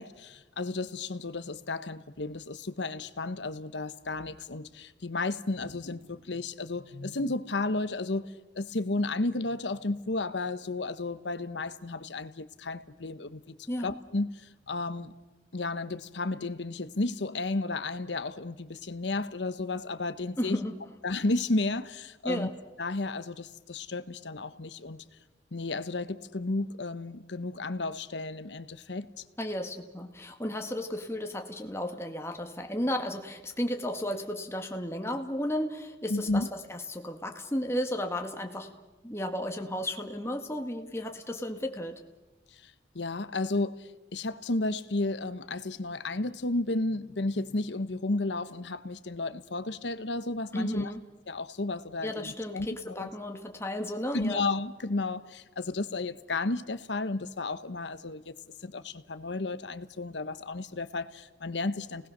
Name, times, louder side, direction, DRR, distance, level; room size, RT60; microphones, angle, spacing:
voice 1, 0.0-13.4 13.8-15.1 15.5-20.6 21.0-22.5 22.8-25.0 25.5-29.1 36.1-36.5 42.6-50.9 51.3-53.1 54.1-58.3 58.6-62.1, left 2 dB, 85° left, 1.1 m, -33 dB
voice 2, 20.4-20.8 22.2-22.5 29.4-38.7 39.0-42.0 50.5-51.0 52.0-54.4, left 1 dB, 15° left, 2.0 m, -34 dB
29.5 x 19.5 x 6.7 m
head